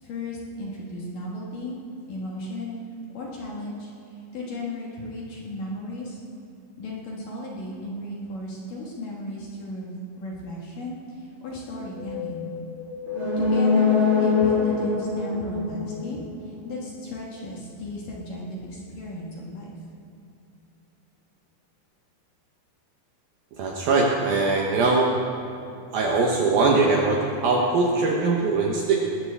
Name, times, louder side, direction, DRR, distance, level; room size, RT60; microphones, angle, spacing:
voice 1, 0.0-2.8 3.1-6.2 6.8-9.9 10.2-12.6 13.4-19.7, left 1 dB, 60° left, -3 dB, 2.6 m, -35 dB
Wind, 11.8-16.1 16.3-16.4, left 8 dB, 80° left, 3.1 m, -35 dB
sound 1, 13.1-16.8 17.1-17.2, left 4 dB, 30° right, 3.3 m, -23 dB
voice 2, 23.6-25.1 25.9-29.0, right 3 dB, 70° right, -1 dB, 2.4 m, -21 dB
20.0 x 13.5 x 3.5 m, 2.7 s
omnidirectional pair, 5.4 m